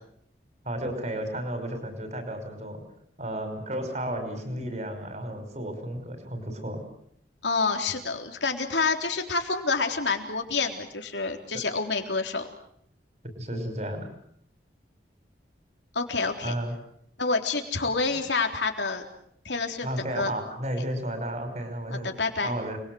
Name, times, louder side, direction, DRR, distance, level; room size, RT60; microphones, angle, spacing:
voice 1, 0.7-2.8 3.2-6.9 13.4-14.1 16.4-16.7 19.8-22.1 22.4-22.8, right 1 dB, 40° right, 7 dB, 5.5 m, -33 dB
voice 2, 7.4-12.5 15.9-16.6 17.2-19.1 19.5-19.9 20.2-20.3 22.0-22.5, left 4 dB, 85° left, 4 dB, 3.9 m, -28 dB
29.5 x 21.5 x 7.9 m, 0.70 s
head